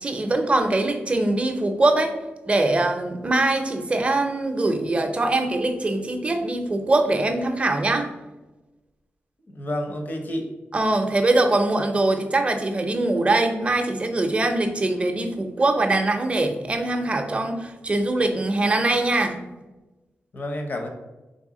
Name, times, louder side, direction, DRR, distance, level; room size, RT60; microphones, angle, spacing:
voice 1, 0.0-2.1 2.5-8.1 10.7-19.4, right 2 dB, 25° right, 5 dB, 0.5 m, -22 dB
voice 2, 9.5-10.5 20.3-20.9, left 1 dB, 45° left, 4 dB, 0.7 m, -29 dB
4.0 x 3.3 x 3.7 m, 1.1 s
wide cardioid pair, 115°, 4 cm